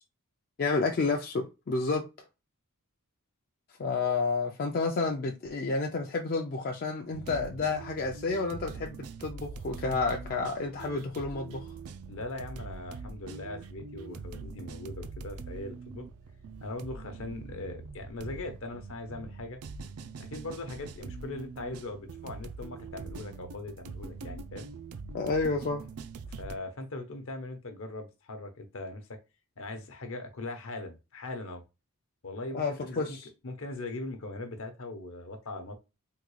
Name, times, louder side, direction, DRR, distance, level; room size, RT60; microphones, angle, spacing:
voice 1, 0.6-2.0 3.8-11.7 25.1-25.8 32.5-33.3, left 3 dB, 45° left, 0.4 m, -30 dB
sound 1, 7.1-26.6, right 4 dB, 75° right, 0.4 m, -43 dB
voice 2, 12.1-16.1 16.6-19.6 20.2-24.7 26.3-29.2 29.6-31.6 32.2-33.2 33.4-35.7, left 2 dB, 65° left, 0.8 m, -40 dB
3.6 x 2.3 x 3.1 m
head